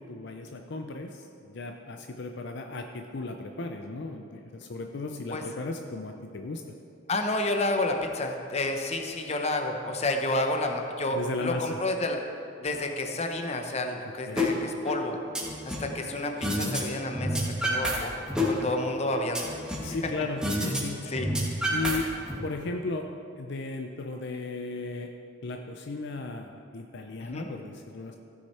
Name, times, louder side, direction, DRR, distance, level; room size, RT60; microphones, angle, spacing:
voice 1, 0.0-6.6 11.1-11.8 14.0-14.5 19.8-21.1 21.7-22.1 22.4-23.1 23.4-25.1 25.4-28.2, left 3 dB, 60° left, 4 dB, 0.5 m, -35 dB
voice 2, 7.1-12.2 12.6-15.2 15.8-18.1 18.4-19.5 20.0-20.1 20.6-20.7 21.0-21.7 27.2-27.5, left 2 dB, 35° left, 4 dB, 0.8 m, -30 dB
sound 1, 14.4-14.5 14.9-15.9 16.4-16.8 17.1-18.0 18.3-19.9 20.4-20.8 21.1-22.4, equal, 5° right, 1.5 m, -28 dB
15.0 x 6.5 x 4.3 m, 2.5 s
head